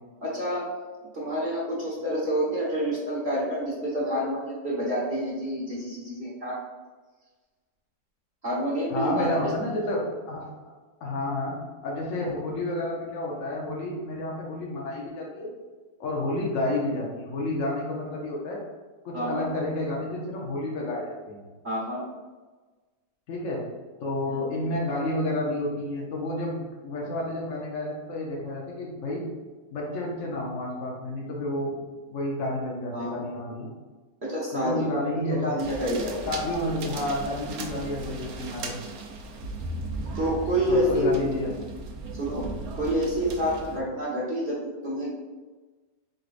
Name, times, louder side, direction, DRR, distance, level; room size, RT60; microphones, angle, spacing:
voice 1, 0.2-0.7 1.1-6.6 8.4-9.3 19.1-19.4 21.6-22.0 24.3-24.4 32.9-33.1 34.2-34.9 35.3-36.1 40.2-41.1 42.2-42.5 42.7-45.1, equal, 45° right, -7 dB, 1.3 m, -28 dB
voice 2, 8.9-10.7 11.0-11.6 11.8-15.5 16.0-18.6 19.0-21.4 23.3-23.7 24.0-29.2 29.7-33.7 34.5-35.7 36.2-38.8 40.7-41.5, left 1 dB, 55° left, -3 dB, 1.1 m, -30 dB
sound 1, 35.6-43.8, right 2 dB, 70° right, 1.0 m, -37 dB
4.7 x 4.0 x 2.5 m, 1.3 s
omnidirectional pair, 1.7 m